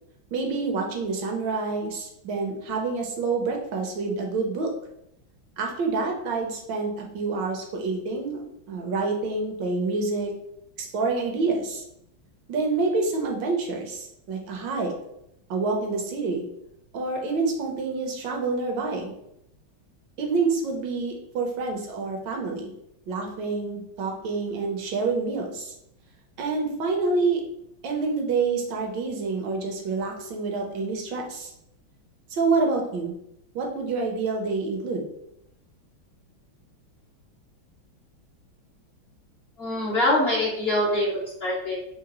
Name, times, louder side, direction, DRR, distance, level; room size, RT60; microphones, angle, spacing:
voice 1, 0.3-4.7 5.6-10.3 10.8-11.8 12.5-14.9 15.5-16.4 16.9-19.1 20.2-22.7 23.1-25.7 26.4-27.4 27.8-31.5 32.3-33.2 33.5-35.0, right 4 dB, 70° right, 1 dB, 1.2 m, -27 dB
voice 2, 39.6-41.7, left 1 dB, 60° left, -6 dB, 0.6 m, -24 dB
3.8 x 2.8 x 2.9 m, 0.79 s
omnidirectional pair, 2.3 m